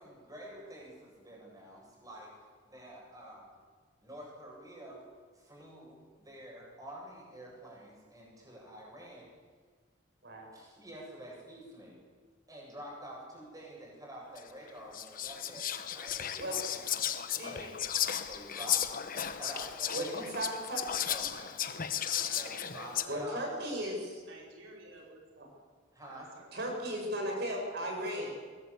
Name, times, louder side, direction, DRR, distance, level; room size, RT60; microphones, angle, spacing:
voice 1, 0.0-3.5 4.0-5.0 5.3-9.3 10.5-12.0 12.5-17.8 18.3-20.4 21.1-21.2 22.3-23.5 25.9-26.3, right 1 dB, 20° right, -2 dB, 8.0 m, -48 dB
Whispering, 14.4-14.5 14.9-23.0, left 10 dB, 45° left, 1.1 m, -35 dB
voice 2, 17.3-17.7 19.9-20.8 23.1-24.2 25.4-25.5 26.5-28.3, equal, 55° right, 1 dB, 6.8 m, -36 dB
voice 3, 19.3-19.6 21.3-21.5 21.9-23.5 24.2-25.2 26.1-26.6 27.9-28.3, right 2 dB, 85° right, -1 dB, 4.7 m, -53 dB
22.0 x 19.5 x 8.5 m, 1.5 s
head